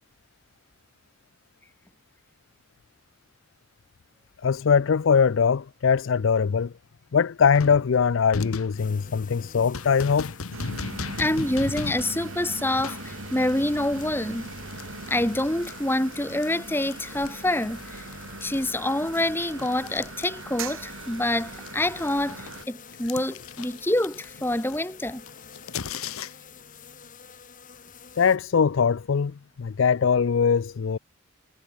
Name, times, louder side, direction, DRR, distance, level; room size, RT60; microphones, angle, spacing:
voice 1, 4.4-6.7 7.1-10.3 28.2-31.0, left 6 dB, 60° left, 0.4 m, -22 dB
sound 1, 7.5-16.5 16.8-20.8 21.1-26.6, left 4 dB, 80° left, 1.0 m, -38 dB
sound 2, 8.8-28.4, left 6 dB, 40° left, 2.9 m, -48 dB
sound 3, 10.5-22.6, right 3 dB, 70° right, 4.7 m, -40 dB
voice 2, 11.2-14.4 15.1-17.8 18.4-25.2, left 1 dB, 10° left, 1.5 m, -26 dB
head